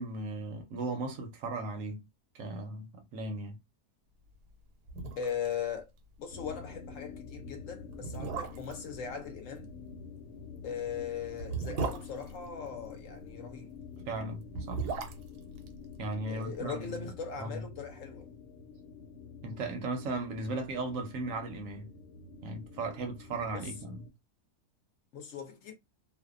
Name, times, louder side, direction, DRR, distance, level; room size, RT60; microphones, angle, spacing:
voice 1, 0.0-2.0 2.3-3.6 14.1-14.8 16.0-17.1 17.4-17.6 19.4-21.9 22.4-24.0, right 2 dB, 65° right, 0.9 m, -37 dB
sound 1, 4.5-4.6 4.9-5.5 5.8-5.9 6.3-6.5 7.2-7.3 7.9-8.9 10.4-13.1 14.3-16.6 16.8-16.9, right 5 dB, 85° right, 1.2 m, -37 dB
voice 2, 5.2-5.9 6.2-9.7 10.6-13.7 16.3-18.3 23.5-23.7 25.1-25.7, left 7 dB, 65° left, 0.8 m, -39 dB
sound 2, 6.3-24.1, left 5 dB, 85° left, 1.1 m, -48 dB
2.6 x 2.1 x 2.4 m
omnidirectional pair, 1.7 m